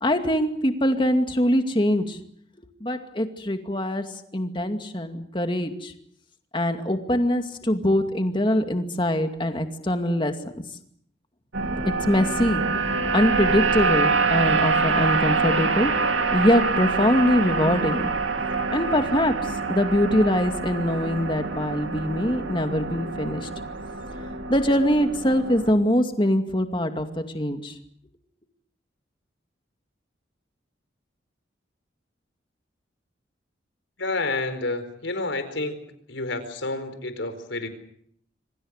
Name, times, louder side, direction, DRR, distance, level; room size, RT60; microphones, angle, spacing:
voice 1, 0.0-2.2 2.8-5.9 6.5-10.5 11.8-12.6 13.1-15.9 16.3-18.1 18.7-23.5 24.5-27.8, equal, 25° left, 6 dB, 2.3 m, -23 dB
sound 1, 11.5-25.7, right 4 dB, 85° right, 2.9 m, -26 dB
voice 2, 34.0-35.8 36.1-37.7, left 2 dB, 80° left, 10 dB, 4.4 m, -29 dB
26.5 x 25.0 x 6.6 m, 0.68 s
head